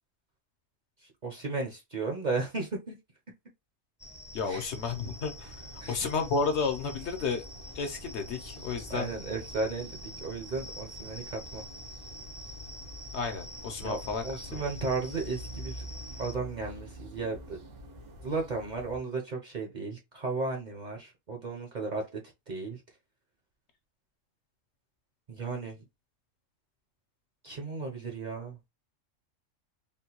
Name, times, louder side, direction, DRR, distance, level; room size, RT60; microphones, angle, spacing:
voice 1, 1.2-3.0 4.5-4.7 5.8-6.0 8.9-11.6 13.8-15.8 16.2-17.6 18.2-22.2 22.5-22.8 25.3-25.8 27.4-28.6, right 3 dB, 45° right, 0.7 m, -34 dB
sound 1, 4.0-16.3, equal, 10° left, 0.5 m, -46 dB
voice 2, 4.3-5.6 5.9-7.4 7.7-9.1 13.1-14.2 14.5-14.7, left 4 dB, 65° left, 0.9 m, -32 dB
sound 2, 4.8-19.0, equal, 85° right, 1.4 m, -47 dB
3.6 x 2.2 x 2.8 m
omnidirectional pair, 1.3 m